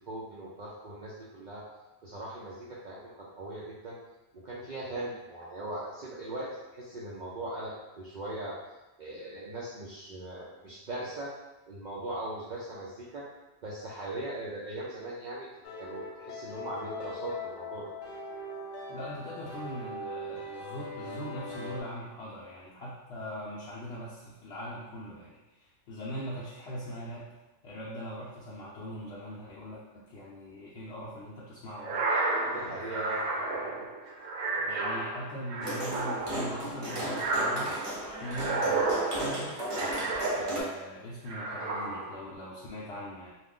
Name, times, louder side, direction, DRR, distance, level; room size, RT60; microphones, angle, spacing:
voice 1, 0.1-1.7 2.0-4.0 4.3-8.6 9.0-11.3 11.7-13.3 13.6-15.5 15.8-17.9 32.4-33.2, right 1 dB, 65° right, -5 dB, 0.4 m, -39 dB
sound 1, 15.6-21.8, left 1 dB, 90° left, 1.0 m, -40 dB
voice 2, 18.9-27.3 27.6-32.0 32.6-33.9 34.6-37.8 38.2-39.7 40.3-43.3, equal, 65° left, -7 dB, 0.8 m, -41 dB
sound 2, 31.8-40.9 41.3-42.3, right 3 dB, 85° right, 1.0 m, -32 dB
sound 3, 35.6-40.6, right 1 dB, 30° right, 0.7 m, -35 dB
2.4 x 2.4 x 3.6 m, 1.0 s
omnidirectional pair, 1.3 m